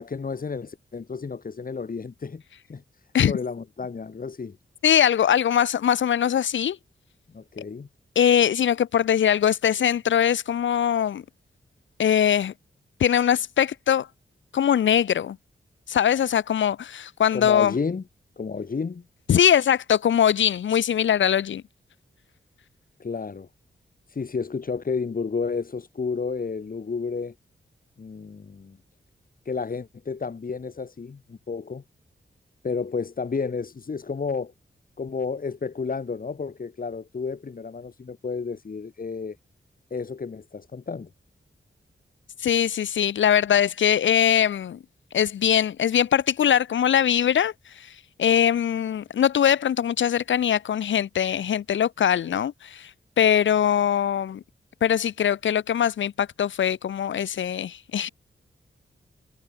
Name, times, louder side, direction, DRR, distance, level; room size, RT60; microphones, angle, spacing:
voice 1, 0.0-2.4 2.7-2.8 3.3-4.6 7.3-7.9 17.3-18.0 18.4-19.0 23.0-23.5 24.1-27.3 28.0-28.8 29.4-31.8 32.6-34.5 35.0-39.4 39.9-41.1, left 5 dB, 45° left, 3.1 m, -31 dB
voice 2, 4.8-6.8 8.2-11.2 12.0-12.5 13.0-14.1 14.5-15.4 15.9-17.7 19.3-21.6 42.4-44.8 45.1-47.9 48.2-52.9 53.2-54.4 54.8-58.1, left 9 dB, 80° left, 0.6 m, -22 dB
wide cardioid pair, 125°, 19 cm